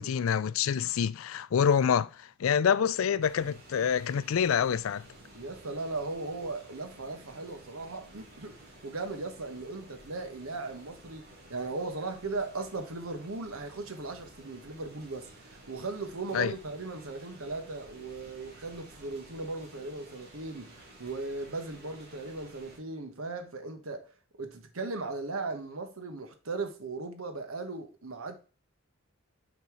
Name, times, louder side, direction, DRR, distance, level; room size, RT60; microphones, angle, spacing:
voice 1, 0.0-5.1 16.3-16.5, left 7 dB, 75° left, 0.4 m, -27 dB
sound 1, 3.2-22.8, right 1 dB, 50° right, 2.5 m, -53 dB
voice 2, 5.3-24.1 24.4-28.4, right 3 dB, 85° right, 1.3 m, -38 dB
6.9 x 4.2 x 4.8 m
head